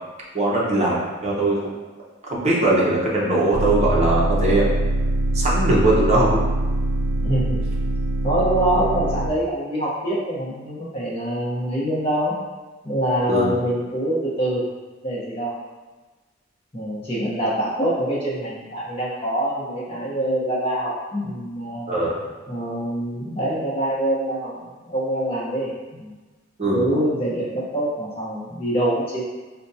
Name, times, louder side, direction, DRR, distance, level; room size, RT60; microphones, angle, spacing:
voice 1, 0.3-1.7 2.2-4.7 5.3-6.4 13.3-13.6 21.9-22.1 26.6-26.8, right 1 dB, 35° right, -5 dB, 0.7 m, -20 dB
sound 1, 3.5-9.3, right 1 dB, 70° right, 0.3 m, -23 dB
voice 2, 7.2-7.6 8.2-12.3 12.8-14.6 15.0-15.5 16.7-21.9 22.5-25.7 26.0-26.1 26.7-29.2, right 1 dB, 30° left, -8 dB, 0.8 m, -25 dB
5.0 x 2.2 x 2.6 m, 1.3 s
head